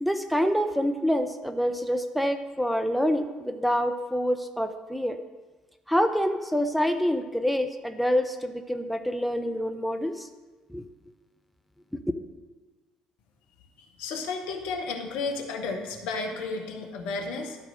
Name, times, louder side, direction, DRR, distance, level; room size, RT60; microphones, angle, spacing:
voice 1, 0.0-5.2 5.9-10.3 10.7-10.8 11.9-12.0, equal, ahead, 6 dB, 0.9 m, -26 dB
voice 2, 14.0-17.6, left 4 dB, 65° left, 3 dB, 1.3 m, -32 dB
12.5 x 4.7 x 7.8 m, 1.3 s
figure-of-eight pair, 50°, 3 cm